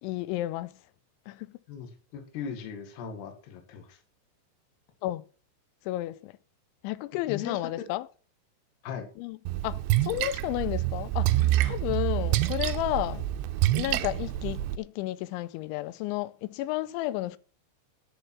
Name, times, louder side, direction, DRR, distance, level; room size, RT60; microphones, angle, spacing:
voice 1, 0.0-0.7 1.3-1.5 5.0-5.2 5.9-6.3 6.8-8.1 9.2-9.4 9.6-13.2 13.7-17.4, left 16 dB, 85° left, 3.0 m, -32 dB
voice 2, 1.7-4.0 7.3-7.6 8.8-9.1 13.1-13.2, left 7 dB, 65° left, 3.6 m, -38 dB
Splash splatter, 9.5-14.8, right 15 dB, 80° right, 2.8 m, -27 dB
10.5 x 6.6 x 6.2 m
omnidirectional pair, 5.3 m